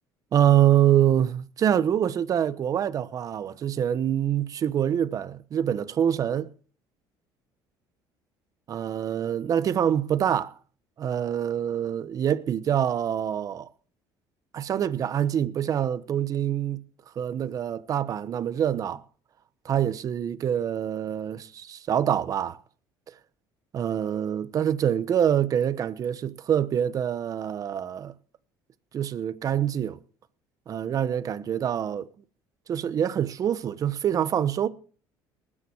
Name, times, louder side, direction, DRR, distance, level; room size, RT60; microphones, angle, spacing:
voice 1, 0.3-6.5 8.7-10.5 11.0-13.7 14.5-16.8 17.1-19.0 19.6-22.6 23.7-28.1 28.9-30.0 30.7-32.1 32.7-34.7, right 10 dB, 40° right, 1.1 m, -25 dB
19.5 x 10.0 x 4.7 m
cardioid pair, 115°, 9 cm